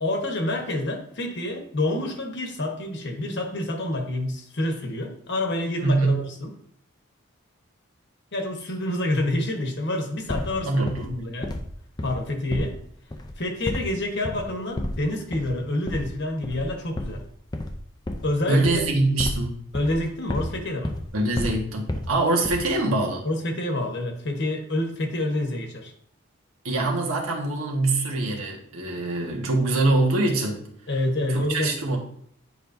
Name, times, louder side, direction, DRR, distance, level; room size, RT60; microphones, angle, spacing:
voice 1, 0.0-6.5 8.3-11.5 12.0-12.8 13.4-17.2 18.2-18.6 19.7-20.9 23.2-25.9 30.9-31.7, left 1 dB, 55° left, 3 dB, 1.2 m, -28 dB
voice 2, 5.8-6.2 10.6-11.3 18.5-19.6 21.1-23.2 26.6-30.6 31.3-32.0, right 2 dB, 80° right, 0 dB, 1.5 m, -24 dB
sound 1, 10.3-10.6 10.9-11.2 11.4-11.7 12.0-12.8 13.1-13.4 13.7-14.0 14.2-14.5 14.8-15.0 15.3-15.6 15.9-16.1 16.4-16.7 17.0-18.4 18.6-19.5 19.7-20.6 20.8-21.1 21.4-22.2 22.4-22.8, left 1 dB, 20° left, 0.5 m, -31 dB
9.6 x 5.2 x 2.6 m, 0.66 s
head